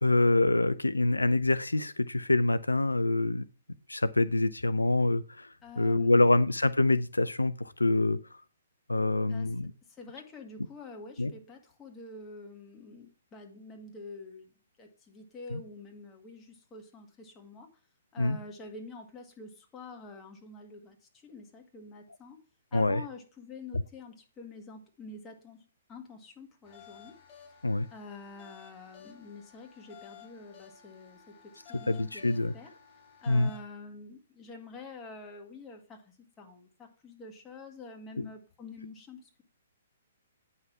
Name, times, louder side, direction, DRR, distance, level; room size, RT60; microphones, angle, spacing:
voice 1, 0.0-3.5 3.9-5.5 5.8-8.2 8.9-9.7 11.2-11.3 15.5-15.6 18.2-18.4 22.7-23.0 27.6-27.9 31.9-32.5 33.3-33.5 38.2-38.3, left 2 dB, 80° left, 15 dB, 0.4 m, -25 dB
voice 2, 5.6-6.4 9.2-14.5 14.8-17.7 18.1-22.4 22.7-25.6 25.9-27.2 27.9-32.7 33.2-39.4, left 3 dB, 15° left, 2 dB, 1.8 m, -47 dB
sound 1, 26.6-33.6, left 9 dB, 35° left, 4.5 m, -54 dB
9.4 x 5.7 x 4.6 m, 0.37 s
figure-of-eight pair, 120°, 0 cm